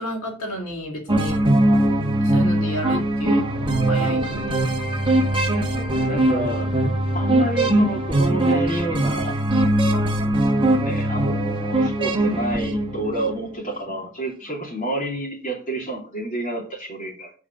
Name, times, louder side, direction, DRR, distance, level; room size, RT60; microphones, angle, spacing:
voice 1, 0.0-1.4 2.2-4.7, equal, 80° left, 1 dB, 3.5 m, -31 dB
sound 1, 1.1-13.4, right 1 dB, 25° right, 1.2 m, -21 dB
voice 2, 5.7-6.7 7.1-9.4 10.8-17.3, right 2 dB, 35° left, -1 dB, 2.9 m, -29 dB
8.5 x 4.8 x 7.2 m, 0.37 s
head